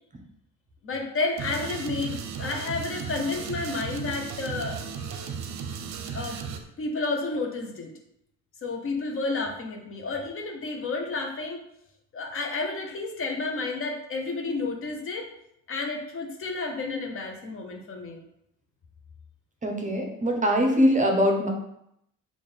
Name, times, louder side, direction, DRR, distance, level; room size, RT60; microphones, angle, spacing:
voice 1, 0.8-5.1 6.1-6.4 6.8-7.9 8.6-11.6 12.1-15.3 15.7-18.2, left 3 dB, 45° left, 2 dB, 0.8 m, -31 dB
sound 1, 1.4-6.6, right 6 dB, 65° right, 0.5 m, -35 dB
voice 2, 19.6-21.5, equal, 25° right, 2 dB, 0.7 m, -22 dB
3.8 x 2.5 x 3.4 m, 0.77 s
cardioid pair, 90°, 30 cm